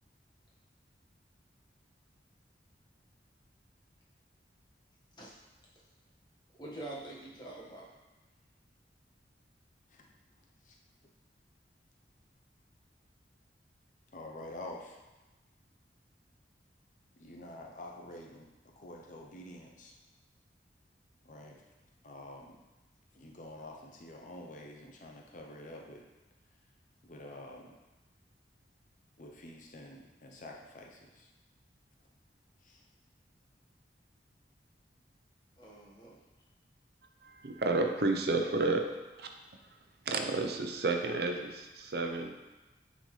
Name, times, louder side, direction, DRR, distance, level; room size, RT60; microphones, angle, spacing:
voice 1, 6.6-7.9 35.6-36.2, right 2 dB, 25° left, -5 dB, 1.5 m, -45 dB
voice 2, 14.1-15.0 17.2-18.5 18.8-19.9 21.2-21.6 22.0-22.6 23.1-26.0 27.0-27.7 29.2-31.3 32.6-32.8, left 1 dB, 45° left, 0 dB, 0.7 m, -48 dB
voice 3, 37.2-38.9 39.2-39.3 40.1-42.4, right 3 dB, 60° right, 4 dB, 0.6 m, -31 dB
9.8 x 4.1 x 3.2 m, 1.1 s
head